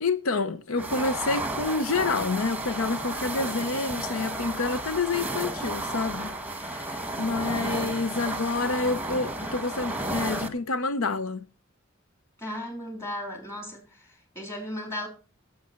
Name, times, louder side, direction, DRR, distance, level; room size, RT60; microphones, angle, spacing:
voice 1, 0.0-11.4, left 3 dB, 90° left, 0.7 m, -28 dB
sound 1, 0.8-10.5, right 2 dB, 10° right, 1.3 m, -32 dB
voice 2, 12.4-15.1, left 1 dB, 15° left, 3.7 m, -36 dB
16.0 x 7.4 x 4.4 m
head